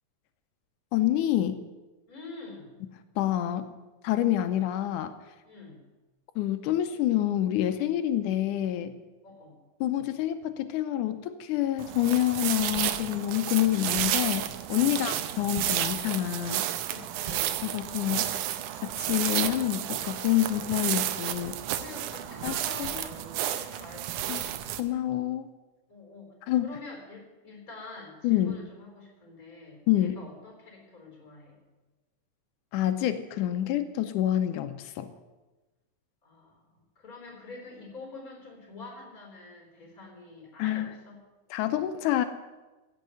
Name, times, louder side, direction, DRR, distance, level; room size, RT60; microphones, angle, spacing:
voice 1, 0.9-1.6 3.2-3.7 4.0-5.1 6.4-8.9 9.8-16.7 17.6-18.3 18.8-21.6 22.4-22.5 22.8-22.9 24.3-24.4 24.8-25.5 26.5-26.7 28.2-28.6 29.9-30.2 32.7-35.1 40.6-40.9 41.5-42.3, left 13 dB, 90° left, 9 dB, 2.3 m, -27 dB
voice 2, 2.1-2.7 5.4-5.8 9.2-9.6 14.9-15.2 16.9-17.5 21.8-24.5 25.9-26.3 26.6-31.6 36.2-41.2, left 3 dB, 25° left, 1 dB, 4.1 m, -46 dB
sound 1, 11.8-24.8, right 12 dB, 90° right, 2.3 m, -31 dB
16.0 x 6.6 x 9.2 m, 1.2 s
omnidirectional pair, 3.5 m